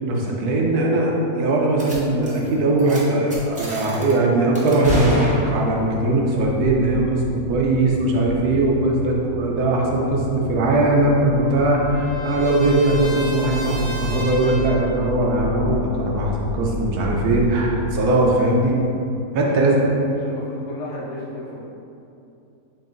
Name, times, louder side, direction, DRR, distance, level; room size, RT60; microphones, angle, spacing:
voice 1, 0.0-18.8 19.3-19.7, right 2 dB, 75° right, -2 dB, 1.2 m, -20 dB
sound 1, 1.8-2.0 2.2-2.5 2.8-3.0 3.3-4.1 4.5-5.9, equal, 10° right, 0.4 m, -27 dB
sound 2, 6.4-18.0, left 2 dB, 80° left, 0.3 m, -32 dB
Trumpet, 10.5-14.9, right 1 dB, 30° left, 0.7 m, -35 dB
voice 2, 19.5-19.9 20.2-21.6, left 1 dB, 55° left, -6 dB, 1.1 m, -33 dB
7.3 x 2.6 x 2.6 m, 2.7 s
omnidirectional pair, 1.6 m